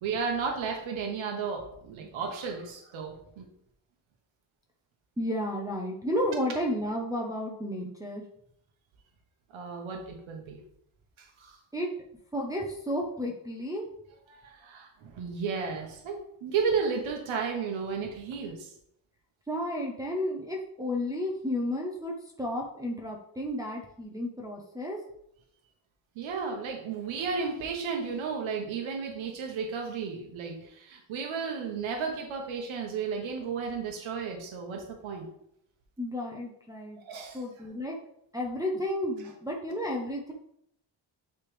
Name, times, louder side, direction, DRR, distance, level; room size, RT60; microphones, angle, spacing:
voice 1, 0.0-3.4 9.5-10.6 11.2-11.6 14.3-16.2 16.4-18.7 26.2-35.3 37.0-37.4, right 5 dB, 85° right, 2 dB, 1.2 m, -33 dB
voice 2, 5.2-8.2 11.7-11.9 12.3-13.9 19.5-25.0 36.0-37.0 37.3-38.0 38.3-40.3, left 1 dB, 10° right, -2 dB, 0.6 m, -32 dB
9.5 x 3.4 x 3.3 m, 0.73 s
cardioid pair, 160°, 46 cm